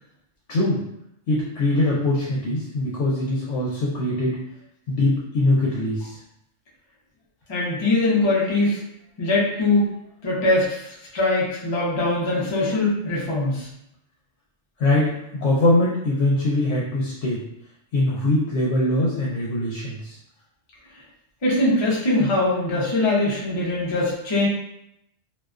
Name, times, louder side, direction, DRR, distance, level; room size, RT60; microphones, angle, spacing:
voice 1, 0.5-0.8 1.3-4.4 4.9-6.2 14.8-15.1 15.4-17.4 17.9-20.2, left 1 dB, 75° left, -5 dB, 0.9 m, -22 dB
voice 2, 7.5-8.8 9.2-9.9 10.2-13.7 21.4-24.5, left 2 dB, 45° left, -5 dB, 0.3 m, -22 dB
2.4 x 2.2 x 2.3 m, 0.80 s
omnidirectional pair, 1.3 m